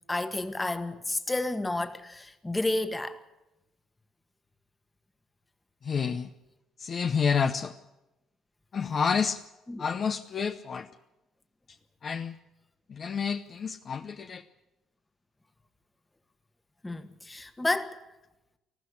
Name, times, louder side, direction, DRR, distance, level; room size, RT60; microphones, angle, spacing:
voice 1, 0.1-3.2 9.7-9.8 16.8-18.0, left 2 dB, 15° left, 1.4 m, -31 dB
voice 2, 5.8-6.3 6.8-7.7 8.7-9.4 9.8-10.9 12.0-12.4 12.9-14.4, left 6 dB, 40° left, 0.8 m, -29 dB
19.5 x 14.0 x 9.8 m
cardioid pair, 105°, 0 cm